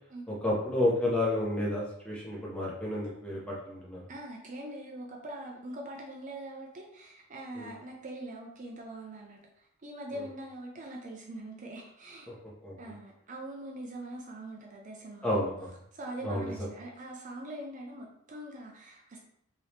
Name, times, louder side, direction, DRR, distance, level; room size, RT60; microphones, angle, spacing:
voice 1, 0.3-4.0 7.6-7.7 12.3-12.4 12.6-12.7 15.2-15.7 16.2-16.5, left 1 dB, 5° left, -5 dB, 0.7 m, -30 dB
voice 2, 4.1-12.3 12.8-15.4 15.9-19.2, right 1 dB, 35° right, 0 dB, 0.4 m, -43 dB
3.0 x 2.7 x 3.2 m, 0.71 s
head